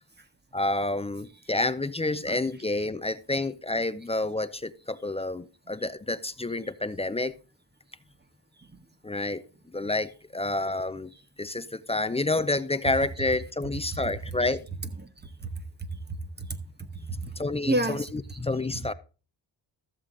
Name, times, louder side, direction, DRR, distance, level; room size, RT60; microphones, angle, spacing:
voice 1, 0.5-7.3 9.0-9.4 9.7-11.1 11.4-14.7 17.1-18.9, left 2 dB, 15° left, 0.4 m, -29 dB
voice 2, 13.9-14.2 15.0-15.5 16.4-16.5 16.8-17.4 17.7-18.4, right 2 dB, 25° right, 1.1 m, -32 dB
13.5 x 7.3 x 3.7 m
cardioid pair, 100°, 44 cm